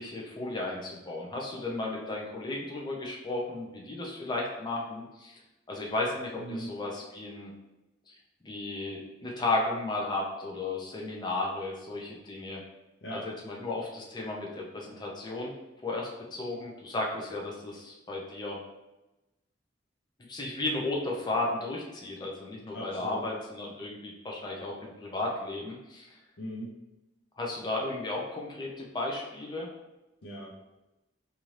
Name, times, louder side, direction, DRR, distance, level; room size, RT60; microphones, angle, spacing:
voice 1, 0.0-5.4 5.7-7.5 8.1-8.2 8.4-12.6 13.1-15.5 15.8-18.6 20.3-26.1 27.4-29.7, left 2 dB, 25° left, -2 dB, 0.4 m, -34 dB
voice 2, 6.4-6.7 13.0-13.2 22.7-23.3 26.4-26.7 30.2-30.7, right 1 dB, 75° left, -5 dB, 0.6 m, -39 dB
2.7 x 2.4 x 3.1 m, 0.99 s
head